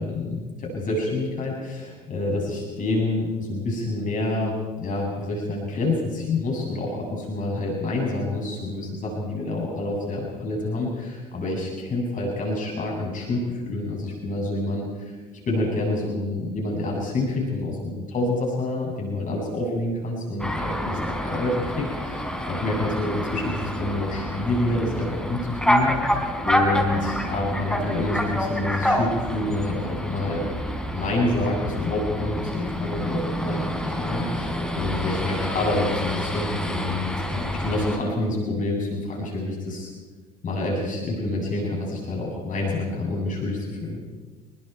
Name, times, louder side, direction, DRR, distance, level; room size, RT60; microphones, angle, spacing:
voice 1, 0.0-15.1 15.5-26.2 26.4-30.5 30.9-39.9 40.4-44.0, left 2 dB, 45° left, -1 dB, 7.9 m, -27 dB
sound 1, 20.4-38.0, equal, 5° left, 4.8 m, -28 dB
28.5 x 22.0 x 4.7 m, 1.4 s
hypercardioid pair, 65°, 18 cm